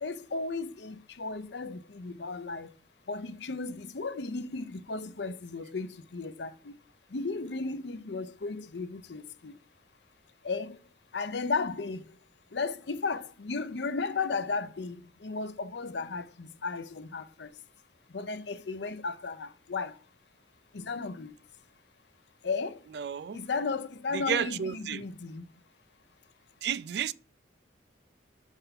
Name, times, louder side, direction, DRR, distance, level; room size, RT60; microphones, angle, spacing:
voice 1, 0.0-2.7 3.1-6.7 7.1-9.5 10.4-10.8 11.1-12.0 12.5-17.5 18.1-19.9 20.7-21.3 22.4-22.8 23.3-25.4, left 4 dB, 65° left, 0.6 m, -35 dB
voice 2, 22.9-23.4 24.1-25.0 26.6-27.1, right 7 dB, 60° right, 0.3 m, -32 dB
6.8 x 3.5 x 5.8 m
head